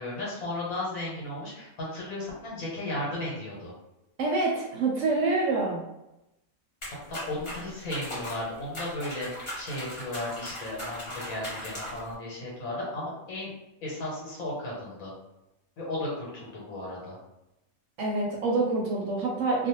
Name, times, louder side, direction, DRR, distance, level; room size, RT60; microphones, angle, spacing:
voice 1, 0.0-3.7 7.1-13.5 13.8-15.1 15.8-17.2, left 1 dB, 75° left, -5 dB, 1.2 m, -35 dB
voice 2, 4.2-5.8 18.0-19.7, right 3 dB, 70° right, -1 dB, 0.8 m, -26 dB
sound 1, 6.8-12.1, left 1 dB, 25° left, 0.9 m, -39 dB
2.4 x 2.1 x 2.8 m, 0.91 s
omnidirectional pair, 1.5 m